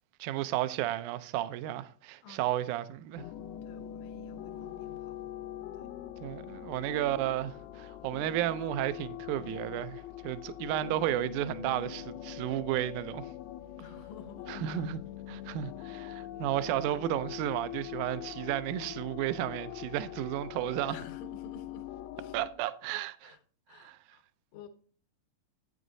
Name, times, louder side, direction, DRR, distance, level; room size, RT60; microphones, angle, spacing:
voice 1, 0.2-3.3 6.2-13.3 14.5-15.0 15.3-21.0 22.3-23.4 23.7-24.0, right 13 dB, 85° right, 1.7 m, -33 dB
sound 1, 3.2-22.5, left 11 dB, 90° left, 2.4 m, -43 dB
voice 2, 3.6-5.2 5.7-5.9 13.8-14.9 15.4-15.6 16.1-16.2 16.7-17.0 20.9-21.9 22.2-22.4 23.2-23.4 23.7-24.2 24.5-24.7, left 5 dB, 70° left, 1.7 m, -51 dB
9.3 x 8.8 x 2.6 m
omnidirectional pair, 4.2 m